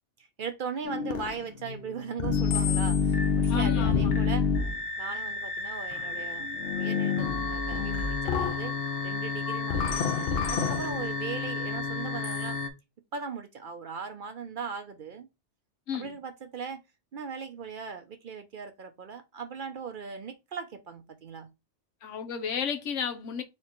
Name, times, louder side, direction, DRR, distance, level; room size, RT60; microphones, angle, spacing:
voice 1, 0.2-4.5 5.0-8.7 9.0-12.6 13.1-15.3 15.9-16.8 17.1-21.5, right 6 dB, 55° right, 0.6 m, -39 dB
sound 1, 0.8-12.7, left 5 dB, 60° left, 0.8 m, -28 dB
voice 2, 3.5-4.1 15.9-16.1 22.0-23.4, left 7 dB, 90° left, 1.1 m, -32 dB
4.3 x 3.2 x 2.9 m
omnidirectional pair, 1.2 m